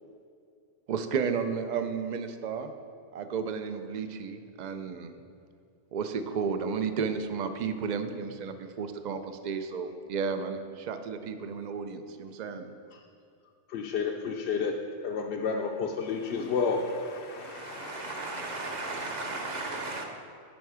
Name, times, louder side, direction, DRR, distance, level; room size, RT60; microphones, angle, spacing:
voice 1, 0.9-2.7 3.1-5.1 5.9-12.7, right 6 dB, 55° right, 0.5 m, -33 dB
voice 2, 13.7-14.7 15.0-19.5, left 5 dB, 70° left, 0.8 m, -32 dB
voice 3, 17.3-20.0, right 3 dB, 40° right, 0.9 m, -36 dB
10.5 x 4.6 x 4.8 m
omnidirectional pair, 1.2 m